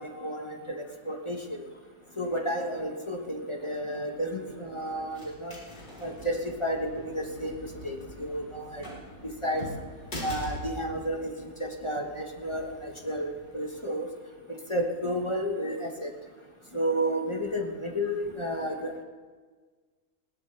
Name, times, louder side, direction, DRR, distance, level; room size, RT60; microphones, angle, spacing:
voice 1, 0.0-1.6 2.2-5.6 6.0-8.8 9.4-9.6 10.2-14.1 14.7-16.1 16.7-19.0, equal, 25° left, 1 dB, 1.4 m, -32 dB
sound 1, 4.2-13.8, equal, 55° left, 4.5 m, -44 dB
19.5 x 18.0 x 3.4 m, 1.5 s
omnidirectional pair, 1.4 m